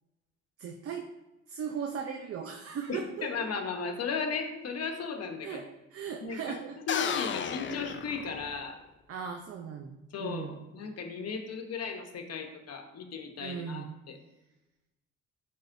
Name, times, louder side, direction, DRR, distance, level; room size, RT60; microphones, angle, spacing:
voice 1, 0.6-1.1 1.5-3.3 5.4-5.6 5.9-6.8 9.1-10.6 13.4-14.0, right 7 dB, 50° right, 4 dB, 0.6 m, -38 dB
voice 2, 2.9-5.6 6.2-6.6 6.9-8.8 10.1-14.2, left 5 dB, 55° left, 5 dB, 1.0 m, -36 dB
sound 1, 6.9-8.8, left 7 dB, 40° left, 0.4 m, -33 dB
10.0 x 3.5 x 2.6 m, 1.0 s
cardioid pair, 90°, 30 cm